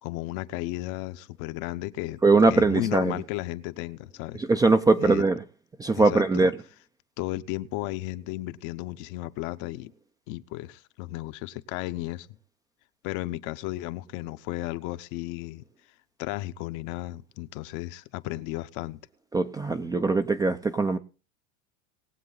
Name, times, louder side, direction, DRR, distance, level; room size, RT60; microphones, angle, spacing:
voice 1, 0.0-2.2 2.5-4.4 5.0-5.2 6.0-6.5 7.2-9.9 10.3-12.3 13.0-15.6 16.2-19.0, left 17 dB, 50° left, 0.9 m, -34 dB
voice 2, 2.2-3.1 4.3-5.4 5.8-6.5 19.3-21.0, right 3 dB, 10° right, 0.5 m, -21 dB
20.5 x 7.7 x 3.9 m
supercardioid pair, 135°, 40 cm